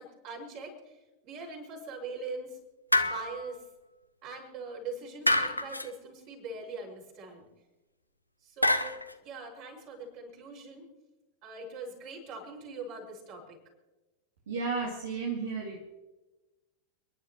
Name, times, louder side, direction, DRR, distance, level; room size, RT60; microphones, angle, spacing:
voice 1, 0.0-2.6 3.0-3.6 4.2-7.5 8.4-10.9 11.4-13.6, right 3 dB, 45° right, 0 dB, 5.7 m, -42 dB
sound 1, 2.9-3.5 5.3-5.9 8.6-9.1, left 1 dB, 85° left, 0.7 m, -27 dB
voice 2, 14.5-15.8, right 4 dB, 65° right, -1 dB, 2.2 m, -33 dB
29.5 x 11.0 x 3.0 m, 1.1 s
figure-of-eight pair, 90°, 0 cm